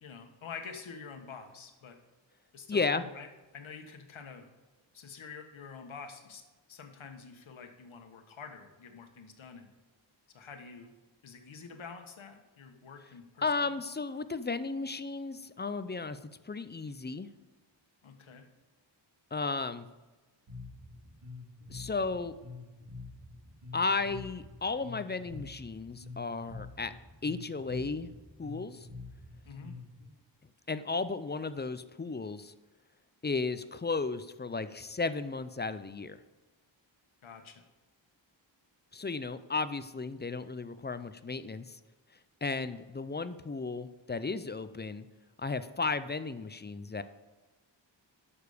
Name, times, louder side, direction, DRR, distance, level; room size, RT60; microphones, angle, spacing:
voice 1, 0.0-2.0 2.5-3.3 3.5-4.5 4.9-6.4 6.7-9.7 10.3-10.9 11.2-13.5 18.0-18.5 29.5-29.8 37.2-37.6, left 5 dB, 85° left, 5 dB, 1.5 m, -47 dB
voice 2, 2.7-3.0 13.4-16.2 16.4-17.3 19.3-19.9 21.7-22.4 23.7-26.9 27.2-28.1 28.4-28.9 30.7-32.5 33.2-36.2 38.9-41.8 42.4-45.1 45.4-47.0, left 4 dB, 25° left, 13 dB, 0.5 m, -34 dB
Bass guitar, 20.5-30.0, left 3 dB, 65° right, 3.9 m, -47 dB
11.0 x 7.0 x 5.1 m, 1.2 s
wide cardioid pair, 115°, 46 cm